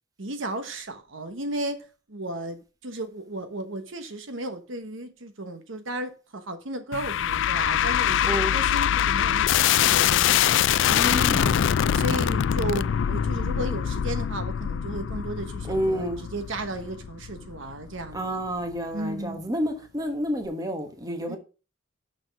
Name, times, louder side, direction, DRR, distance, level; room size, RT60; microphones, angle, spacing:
voice 1, 0.2-11.5 11.9-18.4 18.9-19.4 21.3-21.4, right 1 dB, 70° right, 1.1 m, -34 dB
sound 1, 6.9-18.2, left 9 dB, 60° left, 0.3 m, -24 dB
voice 2, 8.2-8.5 10.9-11.6 15.7-16.2 18.1-21.4, equal, 15° right, 1.2 m, -29 dB
6.4 x 6.1 x 5.8 m
head